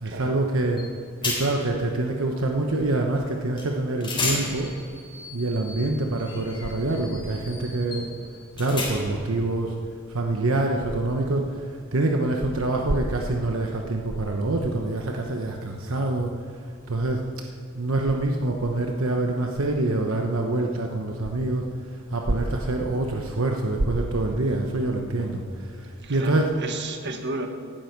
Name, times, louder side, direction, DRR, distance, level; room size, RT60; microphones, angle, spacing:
voice 1, 0.0-0.9 1.2-4.7 5.3-8.1 8.6-9.8 10.1-11.6 11.9-16.3 16.9-17.4 17.7-21.7 22.1-26.5, right 2 dB, 70° right, 2 dB, 1.1 m, -25 dB
sound 1, 0.8-0.9 1.2-1.7 3.6-3.7 4.0-9.3, left 3 dB, 25° left, 3.6 m, -33 dB
voice 2, 26.0-27.5, right 3 dB, 55° right, 4 dB, 1.4 m, -33 dB
16.5 x 12.0 x 4.7 m, 2.4 s
head